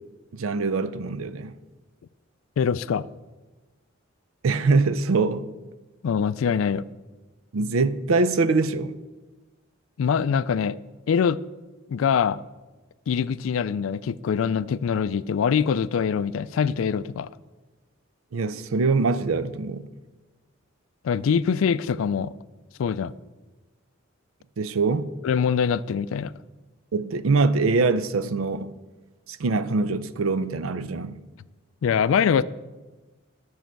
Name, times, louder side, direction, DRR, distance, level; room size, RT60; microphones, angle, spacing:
voice 1, 0.3-1.6 4.4-5.5 7.5-9.0 18.3-19.9 24.6-25.1 26.9-28.8 29.3-31.2, right 3 dB, 80° right, 0.5 m, -23 dB
voice 2, 2.6-3.1 6.0-6.8 10.0-10.8 11.1-11.4 11.9-12.4 13.1-17.3 21.0-22.3 22.8-23.1 25.2-26.3 31.8-32.4, left 7 dB, 75° left, 0.3 m, -23 dB
12.5 x 6.3 x 4.5 m
head